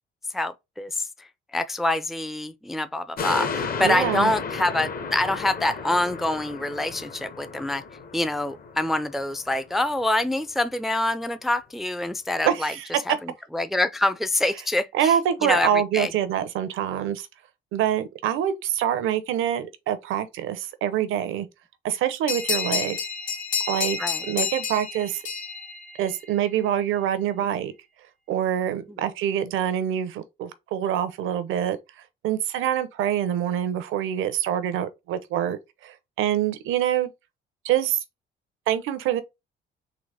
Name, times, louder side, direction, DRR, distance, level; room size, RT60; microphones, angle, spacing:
voice 1, 0.3-1.1 1.5-7.8 8.1-12.7 13.1-15.1 15.4-16.1 24.0-24.2, left 2 dB, ahead, 0.3 m, -26 dB
sound 1, 3.2-9.8 10.2-10.3, left 5 dB, 50° left, 0.9 m, -33 dB
voice 2, 3.8-4.3 12.4-12.9 14.9-17.3 17.7-21.5 21.8-23.0 23.7-24.0 24.3-25.2 26.0-27.7 28.3-31.8 32.2-37.1 37.6-38.0 38.7-39.2, right 10 dB, 90° right, 0.7 m, -25 dB
sound 2, 22.3-26.5, left 6 dB, 80° left, 1.6 m, -30 dB
3.9 x 2.9 x 3.4 m
cardioid pair, 90°, 20 cm